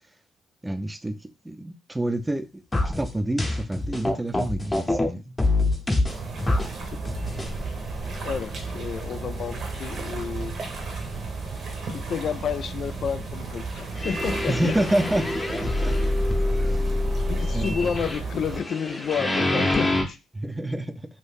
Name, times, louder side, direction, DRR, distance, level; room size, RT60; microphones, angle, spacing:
voice 1, 0.6-5.3 14.5-15.2 15.8-16.0 16.7-16.8 17.5-17.9 20.3-20.9, right 1 dB, 10° right, 0.4 m, -28 dB
sound 1, 2.7-5.1 5.4-6.7 7.1-7.5 8.1-8.2 8.8-8.9 9.4-9.5 13.9-20.0, left 2 dB, 20° left, 0.8 m, -25 dB
sound 2, 6.1-18.6, right 4 dB, 55° right, 1.0 m, -34 dB
voice 2, 8.1-10.6 11.9-14.8 17.3-20.2, left 7 dB, 55° left, 0.4 m, -31 dB
2.7 x 2.6 x 3.5 m
cardioid pair, 90°, 0 cm